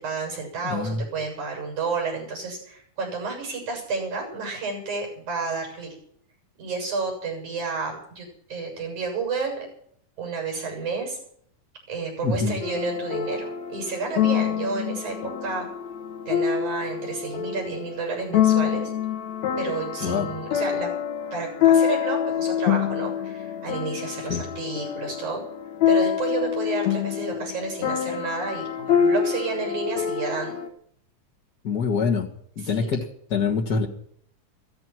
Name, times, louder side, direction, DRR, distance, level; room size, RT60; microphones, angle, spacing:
voice 1, 0.0-6.0 6.6-9.7 10.2-11.2 11.9-15.7 16.3-18.9 19.6-20.9 21.3-25.4 25.9-30.6 32.6-32.9, right 4 dB, 70° right, 2 dB, 8.8 m, -31 dB
voice 2, 0.6-1.0 12.2-12.6 20.0-20.3 24.3-24.4 31.6-32.3 32.6-33.9, left 5 dB, 35° left, 2 dB, 2.0 m, -25 dB
sound 1, 12.6-30.7, left 9 dB, 65° left, 2.5 m, -26 dB
16.0 x 15.0 x 6.1 m, 0.64 s
omnidirectional pair, 3.6 m